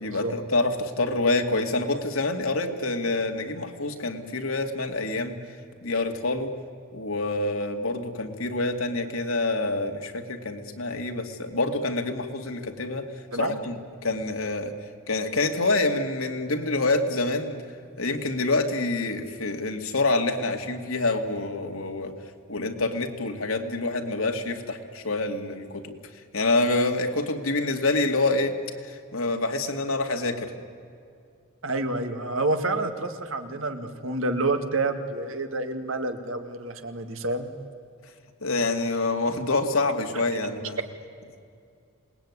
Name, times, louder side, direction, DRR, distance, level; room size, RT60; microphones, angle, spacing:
voice 1, 0.0-5.4 5.8-6.5 6.9-13.1 13.3-14.7 15.1-17.6 18.0-22.1 22.5-25.8 26.3-28.5 28.8-30.5 38.4-40.8, left 2 dB, 75° left, 5 dB, 2.4 m, -27 dB
voice 2, 31.6-37.5, right 2 dB, 65° right, 7 dB, 2.1 m, -28 dB
27.5 x 19.5 x 9.7 m, 2.4 s
head